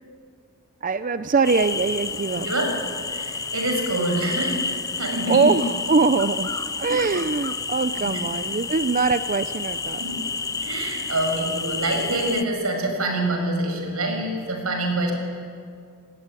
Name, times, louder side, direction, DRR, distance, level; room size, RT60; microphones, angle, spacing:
voice 1, 0.8-2.5 5.3-6.5 6.8-10.0, right 4 dB, 35° right, 11 dB, 0.5 m, -22 dB
sound 1, 1.4-12.4, left 4 dB, 15° left, 0.6 m, -30 dB
voice 2, 3.1-4.6 5.0-5.6 10.0-10.2 10.6-15.1, right 2 dB, 80° right, 3 dB, 6.6 m, -25 dB
26.0 x 19.5 x 9.8 m, 2.2 s
head